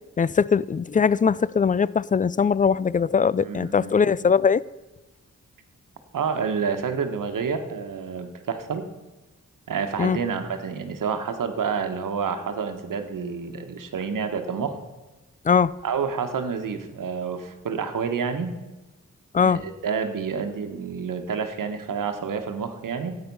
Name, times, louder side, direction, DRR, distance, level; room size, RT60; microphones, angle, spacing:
voice 1, 0.2-4.6 10.0-10.2 15.5-15.7 19.3-19.6, left 6 dB, 25° left, 0.3 m, -21 dB
voice 2, 3.4-3.9 6.1-8.8 9.7-14.8 15.8-18.5 19.4-23.2, right 6 dB, 85° right, 1.3 m, -29 dB
13.0 x 8.8 x 5.4 m
cardioid pair, 55°, 31 cm